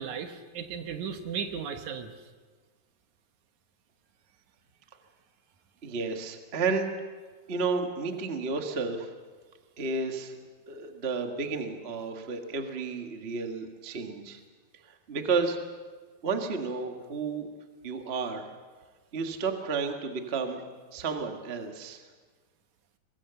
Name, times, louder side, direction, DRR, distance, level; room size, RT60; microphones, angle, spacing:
voice 1, 0.0-2.1, right 7 dB, 65° right, 7 dB, 2.3 m, -35 dB
voice 2, 5.8-6.9 7.5-9.1 9.8-10.4 10.7-14.4 14.9-15.6 16.2-17.5 17.8-18.4 19.1-20.6 20.9-22.0, right 4 dB, 45° right, 4 dB, 0.8 m, -32 dB
23.5 x 21.0 x 7.0 m, 1.4 s
omnidirectional pair, 4.2 m